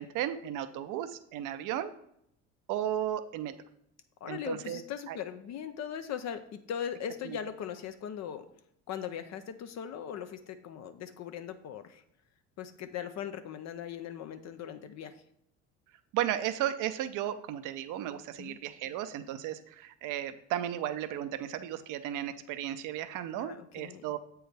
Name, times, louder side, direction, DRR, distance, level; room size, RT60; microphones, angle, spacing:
voice 1, 0.0-1.9 2.7-3.5 4.3-4.8 5.1-5.2 7.2-7.4 16.1-24.2, right 11 dB, 60° right, 12 dB, 0.6 m, -34 dB
voice 2, 4.2-8.5 8.9-12.0 12.6-15.2 18.4-18.6 23.4-24.0, left 8 dB, 50° left, 9 dB, 0.6 m, -39 dB
7.4 x 4.6 x 3.4 m, 0.72 s
hypercardioid pair, 70°, 35 cm